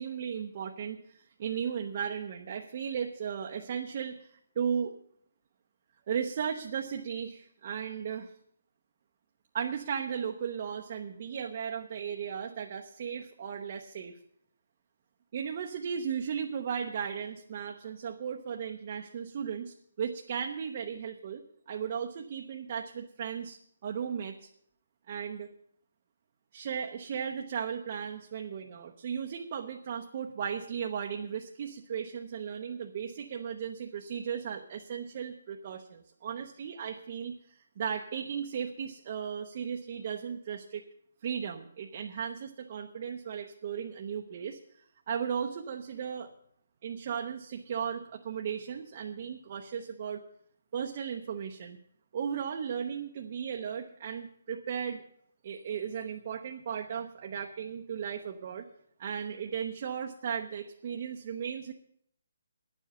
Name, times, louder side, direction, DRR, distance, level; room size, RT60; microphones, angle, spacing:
voice 1, 0.0-4.9 6.1-8.3 9.5-14.2 15.3-21.4 21.7-24.5 25.1-25.5 26.5-40.8 41.2-44.6 45.1-46.3 46.8-50.2 50.7-51.8 52.1-55.0 55.4-58.7 59.0-61.7, right 7 dB, 30° right, 2 dB, 0.7 m, -36 dB
10.5 x 7.4 x 9.4 m, 0.66 s
hypercardioid pair, 175°, 0 cm